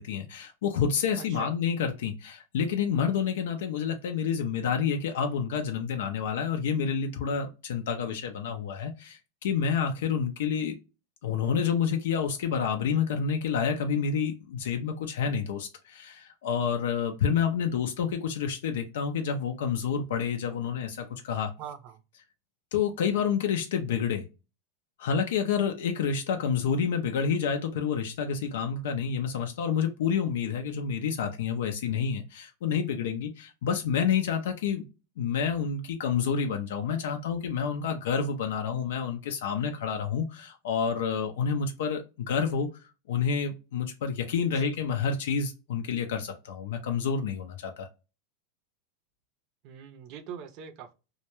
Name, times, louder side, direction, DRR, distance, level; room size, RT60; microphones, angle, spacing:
voice 1, 0.0-10.7 11.2-21.5 22.7-24.2 25.0-34.8 35.2-42.7 43.1-47.9, left 7 dB, 80° left, 5 dB, 0.4 m, -29 dB
voice 2, 1.2-1.5 21.6-22.0 44.5-44.7 49.6-50.9, right 8 dB, 45° right, 9 dB, 0.5 m, -42 dB
2.2 x 2.1 x 2.9 m, 0.29 s
supercardioid pair, 135°, 0 cm